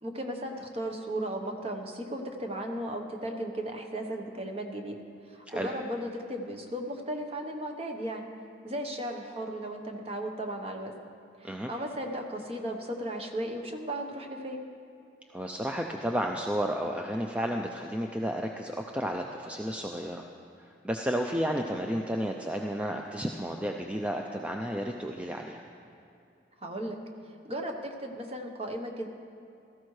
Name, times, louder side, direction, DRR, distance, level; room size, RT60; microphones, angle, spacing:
voice 1, 0.0-5.0 5.2-8.3 8.6-10.9 11.4-14.6 26.6-27.0 27.2-29.1, right 1 dB, 30° right, 3 dB, 1.0 m, -36 dB
voice 2, 15.3-20.2 20.6-25.6, equal, 5° right, 2 dB, 0.4 m, -32 dB
17.0 x 14.0 x 3.2 m, 2.6 s
head